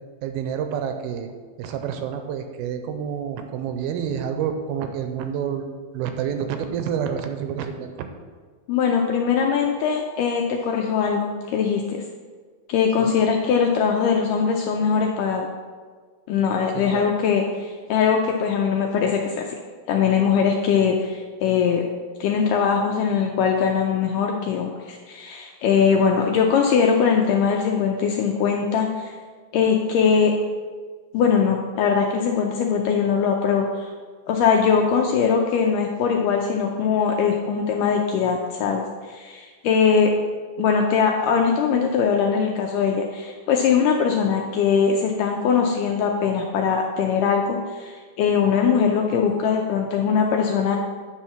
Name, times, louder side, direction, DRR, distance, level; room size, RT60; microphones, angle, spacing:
voice 1, 0.2-1.3 1.6-5.7 5.9-8.1 13.0-13.1 16.7-17.1, right 8 dB, 85° right, 7 dB, 2.5 m, -28 dB
voice 2, 8.7-12.0 12.7-15.5 16.3-19.5 19.9-21.8 22.2-29.1 29.5-30.3 31.1-33.9 34.3-40.1 40.6-50.8, left 6 dB, 85° left, 1 dB, 1.9 m, -21 dB
9.7 x 4.2 x 6.0 m, 1.5 s
omnidirectional pair, 4.4 m